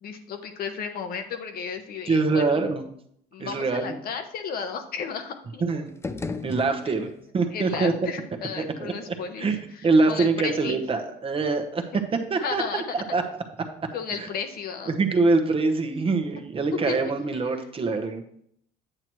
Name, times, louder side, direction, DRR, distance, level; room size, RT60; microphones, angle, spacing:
voice 1, 0.0-2.6 3.3-5.8 6.8-6.9 7.5-10.8 12.4-13.2 13.9-15.0 16.7-17.1, left 6 dB, 65° left, 6 dB, 1.0 m, -34 dB
voice 2, 2.1-2.8 3.4-3.9 5.6-5.9 6.4-7.9 8.6-8.9 9.4-9.6 9.8-11.8 12.3-12.8 13.1-13.2 13.8-13.9 14.2-14.3 14.9-18.2, right 3 dB, 35° right, 5 dB, 1.0 m, -24 dB
sound 1, 5.9-7.3, left 3 dB, 15° left, 0.5 m, -35 dB
8.9 x 7.6 x 3.1 m, 0.69 s
cardioid pair, 110°, 17 cm